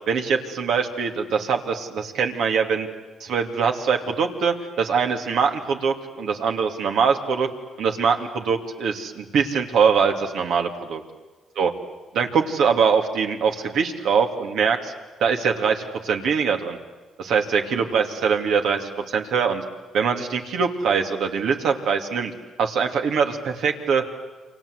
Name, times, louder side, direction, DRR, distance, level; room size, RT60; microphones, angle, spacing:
voice 1, 0.1-2.9 3.2-7.5 7.8-11.0 11.6-11.7 12.1-14.9 15.2-16.8 17.2-19.6 19.9-22.3 22.6-24.0, right 6 dB, 75° right, 4 dB, 2.7 m, -23 dB
29.0 x 25.0 x 8.1 m, 1.2 s
cardioid pair, 90°, 0 cm